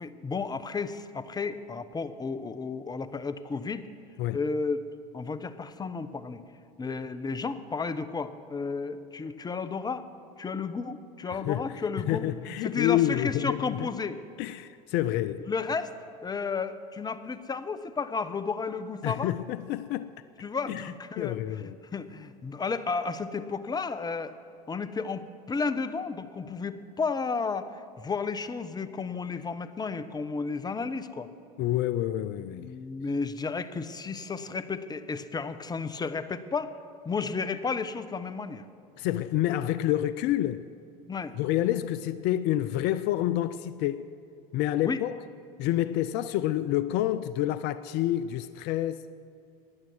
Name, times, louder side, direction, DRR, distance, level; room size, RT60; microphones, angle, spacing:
voice 1, 0.0-3.9 4.3-4.9 5.1-6.4 6.8-10.1 10.4-12.3 12.6-14.2 15.5-15.9 16.2-19.3 20.4-21.6 21.9-24.4 24.7-31.3 32.5-36.8 37.0-38.6 41.1-41.3 44.8-45.0, left 4 dB, 20° left, 0.8 m, -32 dB
voice 2, 12.1-13.9 14.4-15.5 19.0-20.1 20.7-20.9 21.2-21.8 31.6-32.7 39.0-40.7 41.4-44.0 44.5-45.2 45.6-49.0, left 13 dB, 55° left, 0.5 m, -28 dB
16.5 x 10.5 x 6.2 m
hypercardioid pair, 85°, 21 cm